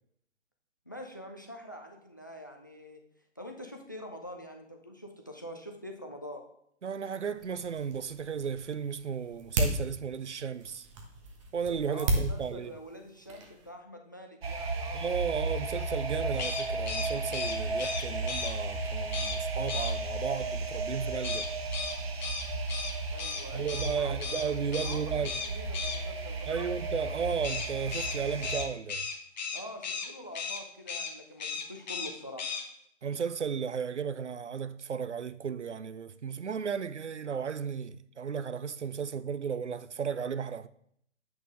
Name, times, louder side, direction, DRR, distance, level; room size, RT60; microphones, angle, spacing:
voice 1, 0.9-3.0 3.4-6.4 11.9-15.1 23.1-26.7 29.5-32.5, equal, 20° left, 0.3 m, -45 dB
voice 2, 6.8-10.9 11.5-12.7 14.9-21.5 23.5-25.3 26.5-29.1 33.0-40.7, right 6 dB, 80° right, 0.6 m, -34 dB
sound 1, 7.3-13.7, right 1 dB, 25° right, 1.1 m, -35 dB
sound 2, 14.4-28.6, right 3 dB, 60° right, 1.0 m, -34 dB
sound 3, 16.3-18.5 19.1-19.4 19.7-19.9 21.2-23.9 24.2-24.5 24.7-25.0 25.2-26.0 27.4-30.1 30.3-30.6 30.9-31.1 31.4-32.1 32.4-32.6, left 5 dB, 40° left, 1.0 m, -35 dB
8.0 x 6.1 x 3.5 m
figure-of-eight pair, 130°, 35 cm